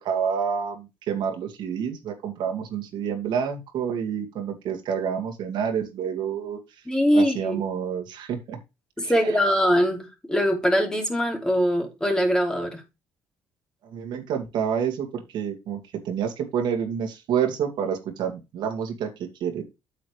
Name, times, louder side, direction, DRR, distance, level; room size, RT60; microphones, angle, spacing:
voice 1, 0.0-6.6 7.1-8.6 9.0-9.4 13.9-19.6, right 7 dB, 65° right, 2.4 m, -28 dB
voice 2, 6.9-7.6 9.0-12.8, equal, 10° left, 2.8 m, -22 dB
8.4 x 7.6 x 3.4 m
cardioid pair, 105°, 8 cm